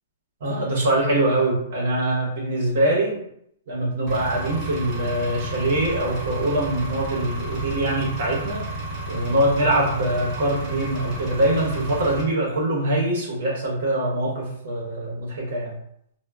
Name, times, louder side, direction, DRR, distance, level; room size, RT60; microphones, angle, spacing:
voice 1, 0.4-3.2 3.7-8.7 9.1-15.8, right 1 dB, 65° right, -3 dB, 0.8 m, -23 dB
Engine, 4.1-12.2, right 2 dB, 30° right, 1.1 m, -32 dB
2.1 x 2.1 x 3.3 m, 0.72 s
hypercardioid pair, 155°, 0 cm